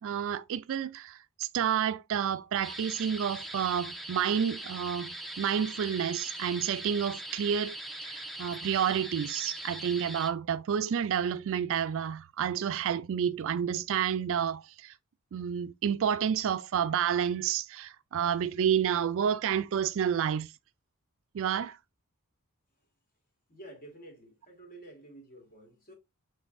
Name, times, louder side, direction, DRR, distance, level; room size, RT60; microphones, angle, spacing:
voice 1, 0.0-7.8 8.0-14.9 15.3-20.5 21.3-21.8, right 8 dB, 65° right, 0.3 m, -30 dB
sound 1, 2.6-10.3, right 1 dB, ahead, 0.5 m, -41 dB
voice 2, 23.5-25.9, right 1 dB, 40° left, 1.8 m, -50 dB
6.3 x 3.2 x 2.5 m
head